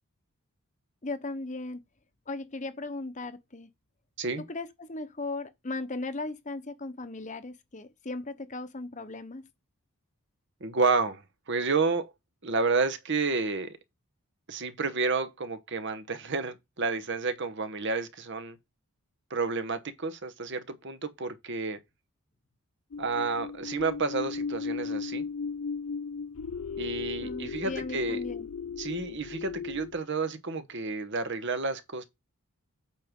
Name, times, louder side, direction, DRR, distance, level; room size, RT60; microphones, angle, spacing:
voice 1, 1.0-1.8 2.3-3.7 4.5-9.5 27.2-28.5, left 2 dB, 35° left, 1.0 m, -37 dB
voice 2, 10.6-11.2 11.5-12.1 12.4-13.8 14.5-18.6 19.3-21.8 23.0-25.2 26.8-28.2 28.8-32.0, right 4 dB, 55° right, 1.1 m, -30 dB
sound 1, 22.9-30.0, left 5 dB, 65° left, 0.4 m, -36 dB
8.7 x 6.0 x 3.7 m
head